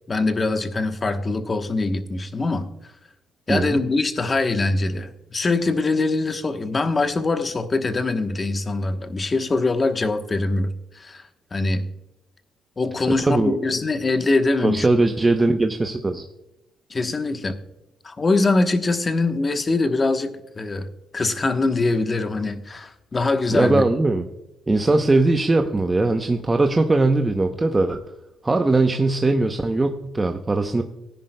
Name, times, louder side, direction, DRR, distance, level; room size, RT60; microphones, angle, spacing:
voice 1, 0.1-2.6 3.5-11.2 11.5-11.8 12.8-14.9 16.9-17.6 18.0-20.9 21.1-23.8, left 3 dB, 30° left, 8 dB, 1.1 m, -23 dB
voice 2, 3.5-3.8 13.2-13.6 14.6-16.2 23.5-24.2 24.7-28.0 28.4-30.8, right 2 dB, 20° right, 5 dB, 0.7 m, -20 dB
17.0 x 10.0 x 2.2 m, 0.90 s
cardioid pair, 90°, 0 cm